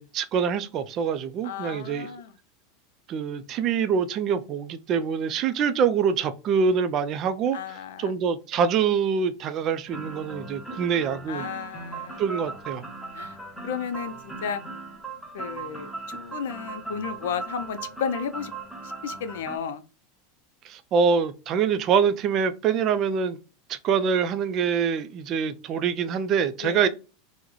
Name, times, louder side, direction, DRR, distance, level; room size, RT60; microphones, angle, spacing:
voice 1, 0.0-2.1 3.1-11.4 12.2-12.8 20.6-23.4 23.7-26.9, right 6 dB, 35° right, 0.3 m, -25 dB
voice 2, 1.4-2.3 7.5-8.1 11.3-12.2 13.1-13.4 13.6-14.6 15.3-18.5 19.0-19.8 26.6-26.8, left 7 dB, 85° left, 0.4 m, -33 dB
sound 1, 9.9-19.6, right 3 dB, ahead, 0.7 m, -38 dB
3.7 x 2.0 x 3.0 m
supercardioid pair, 155°, 0 cm